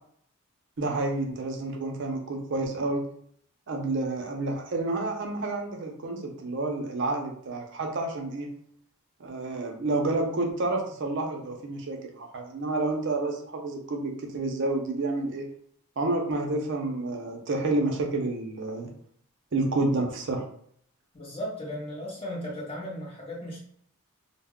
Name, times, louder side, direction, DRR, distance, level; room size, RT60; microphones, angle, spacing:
voice 1, 0.8-3.0 3.7-8.5 9.2-15.5 16.0-18.9 19.5-20.4, right 2 dB, 55° right, 2 dB, 0.5 m, -29 dB
voice 2, 21.1-23.6, equal, 25° left, -5 dB, 0.8 m, -36 dB
2.1 x 2.0 x 3.5 m, 0.64 s
head